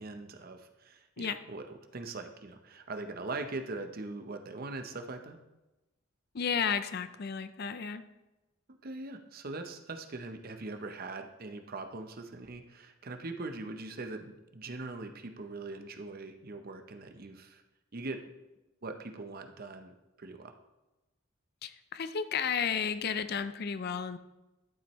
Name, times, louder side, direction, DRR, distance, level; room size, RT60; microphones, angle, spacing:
voice 1, 0.0-1.7 1.9-5.4 8.7-17.6 17.9-18.2 18.8-20.5, right 3 dB, 45° right, 6 dB, 0.7 m, -41 dB
voice 2, 6.3-8.0 21.6-24.2, left 6 dB, 50° left, 12 dB, 0.5 m, -33 dB
11.5 x 7.4 x 3.1 m, 1.0 s
head